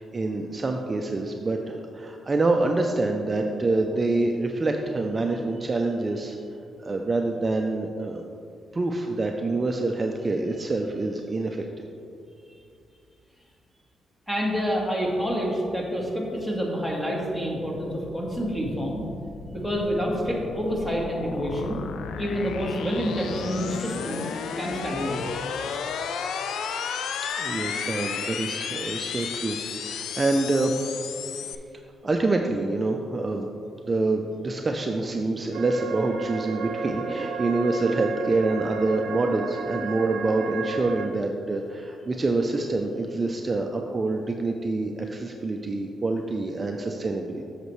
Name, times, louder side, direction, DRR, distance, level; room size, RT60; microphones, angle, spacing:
voice 1, 0.0-6.4 6.8-8.2 8.7-11.9 27.4-30.9 32.0-33.5 33.8-47.5, right 2 dB, 30° right, 3 dB, 0.4 m, -26 dB
voice 2, 14.3-19.0 19.5-21.8 22.2-25.2, equal, 10° left, -2 dB, 1.5 m, -28 dB
sound 1, 18.0-31.6, left 6 dB, 80° left, 0.3 m, -33 dB
sound 2, 35.5-41.1, right 4 dB, 80° right, 0.7 m, -33 dB
8.0 x 6.6 x 3.1 m, 2.5 s
cardioid pair, 100°, 0 cm